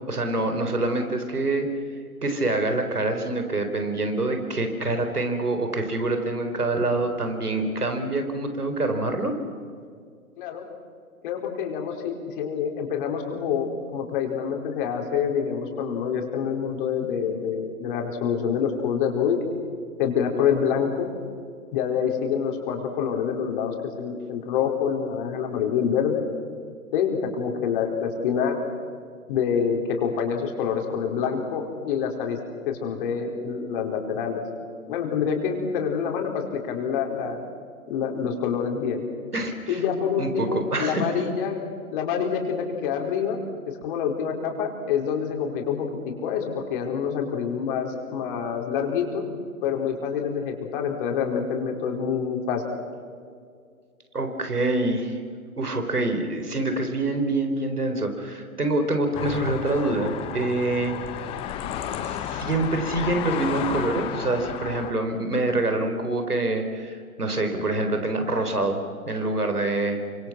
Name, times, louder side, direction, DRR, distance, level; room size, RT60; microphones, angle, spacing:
voice 1, 0.1-1.7 2.2-9.3 39.3-39.8 40.2-41.2 54.1-55.2 55.6-61.0 62.0-70.0, right 2 dB, 85° right, 6 dB, 4.3 m, -26 dB
voice 2, 10.4-10.7 11.2-19.4 20.0-21.1 21.7-26.2 26.9-28.6 29.3-32.4 32.6-34.4 34.9-37.4 37.9-39.0 39.7-41.6 41.9-43.4 43.7-49.2 49.6-52.6, left 7 dB, 35° left, 2 dB, 4.6 m, -26 dB
sound 1, 59.1-64.9, left 10 dB, 10° left, 0.8 m, -32 dB
28.5 x 26.0 x 6.1 m, 2.2 s
figure-of-eight pair, 130°, 44 cm